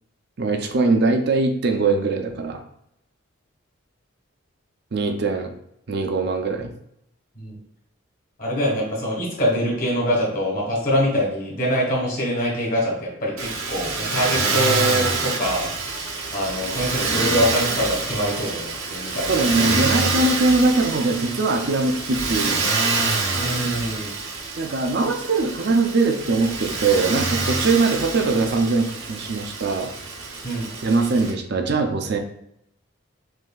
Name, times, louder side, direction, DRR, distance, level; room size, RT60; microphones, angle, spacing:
voice 1, 0.4-2.6 4.9-5.5 5.9-6.7 19.3-22.6 24.6-29.9 30.8-32.2, right 3 dB, 55° right, 4 dB, 0.5 m, -21 dB
voice 2, 8.4-15.7 16.3-19.3 19.6-19.8 23.3-24.2 30.4-30.7, equal, 45° left, -3 dB, 1.6 m, -24 dB
Motor vehicle (road), 13.4-31.3, right 3 dB, 90° right, 0.9 m, -26 dB
6.2 x 2.7 x 2.3 m, 0.78 s
head